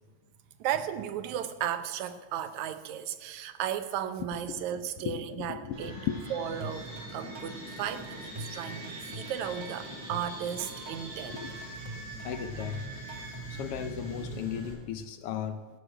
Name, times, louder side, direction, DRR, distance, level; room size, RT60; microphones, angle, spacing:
voice 1, 0.6-5.9 6.3-11.4 13.1-13.3, right 9 dB, 80° right, 10 dB, 2.2 m, -35 dB
voice 2, 4.3-6.2 11.2-11.6 12.2-12.8 13.5-15.6, left 9 dB, 75° left, 10 dB, 1.4 m, -36 dB
sound 1, 5.7-14.7, right 1 dB, 65° right, 7.6 m, -42 dB
sound 2, 6.6-13.4, right 2 dB, 45° right, 0.3 m, -45 dB
16.5 x 7.2 x 8.8 m, 1.3 s
omnidirectional pair, 3.3 m